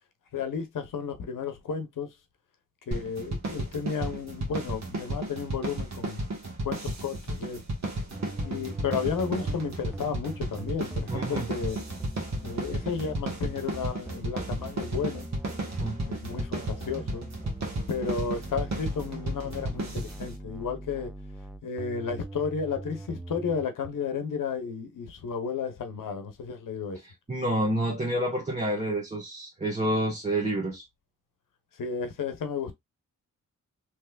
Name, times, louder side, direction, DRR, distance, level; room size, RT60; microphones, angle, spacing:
voice 1, 0.3-2.1 2.9-6.2 6.6-7.6 8.4-11.8 12.4-15.3 16.1-17.2 17.9-21.1 21.6-27.0 31.8-32.7, left 6 dB, 80° left, 0.8 m, -33 dB
sound 1, 2.9-20.4, right 2 dB, 55° right, 1.3 m, -34 dB
sound 2, 8.1-23.9, right 2 dB, 5° right, 0.4 m, -41 dB
voice 2, 11.1-11.5 15.8-16.0 27.0-30.8, right 1 dB, 20° right, 1.2 m, -29 dB
3.3 x 3.1 x 2.3 m
cardioid pair, 75°, 32 cm